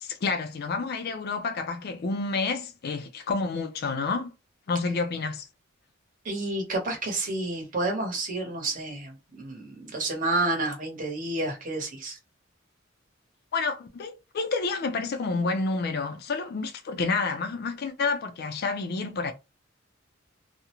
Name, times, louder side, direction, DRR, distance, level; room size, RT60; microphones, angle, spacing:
voice 1, 0.0-4.3 4.7-5.4 13.5-19.3, left 4 dB, 50° left, 0.4 m, -29 dB
voice 2, 6.2-12.2, right 2 dB, 40° right, 0.9 m, -30 dB
2.4 x 2.0 x 2.8 m
head